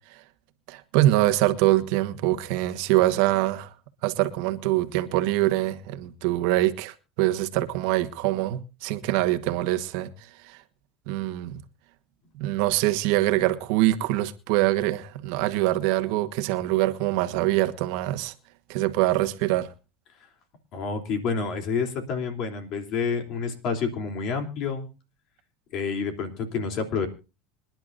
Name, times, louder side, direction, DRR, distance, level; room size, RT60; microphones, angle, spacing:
voice 1, 0.7-3.7 4.0-10.1 10.4-10.6 11.1-11.6 12.4-18.3 18.7-19.7, right 16 dB, 70° right, 1.3 m, -24 dB
voice 2, 20.7-24.9 25.7-27.1, left 5 dB, 55° left, 3.1 m, -28 dB
26.0 x 10.5 x 2.6 m
supercardioid pair, 120°, 0 cm